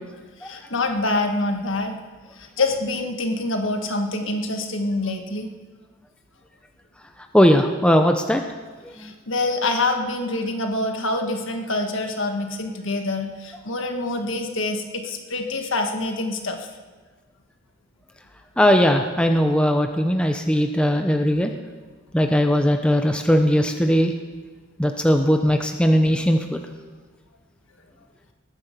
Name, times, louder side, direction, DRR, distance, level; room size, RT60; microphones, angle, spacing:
voice 1, 0.4-2.0 2.3-5.5 8.9-16.7, left 2 dB, 65° left, 4 dB, 1.8 m, -26 dB
voice 2, 7.3-8.4 9.0-9.1 18.6-21.5 22.1-24.1 24.8-26.6, equal, 5° left, 4 dB, 0.8 m, -19 dB
20.0 x 9.9 x 6.8 m, 1.4 s
head